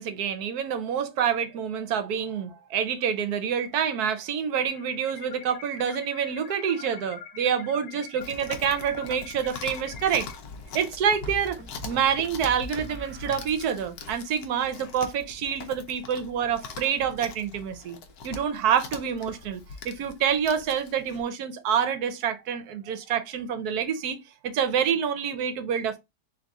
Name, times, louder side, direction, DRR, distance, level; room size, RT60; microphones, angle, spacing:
voice 1, 0.0-10.3 10.7-11.6 11.8-18.0 18.2-24.2 24.4-26.0, right 8 dB, 70° right, 1.1 m, -27 dB
sound 1, 4.5-10.3, left 8 dB, 90° left, 1.3 m, -44 dB
Chewing mastication, 8.2-21.2, left 5 dB, 65° left, 1.2 m, -42 dB
sound 2, 11.2-13.9, right 1 dB, 10° right, 0.5 m, -43 dB
3.9 x 3.1 x 3.5 m
omnidirectional pair, 1.8 m